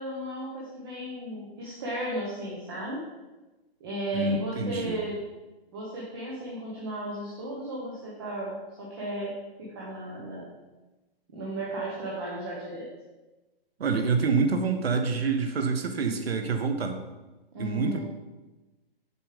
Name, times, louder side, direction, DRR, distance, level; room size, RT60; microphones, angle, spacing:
voice 1, 0.0-3.0 3.8-5.2 5.7-9.3 9.6-10.5 11.3-12.9 17.5-18.0, right 1 dB, 25° right, -5 dB, 1.1 m, -35 dB
voice 2, 4.1-5.0 13.8-17.0 17.6-18.0, right 4 dB, 80° right, 6 dB, 1.2 m, -27 dB
6.8 x 5.2 x 5.1 m, 1.1 s
hypercardioid pair, 175°, 30 cm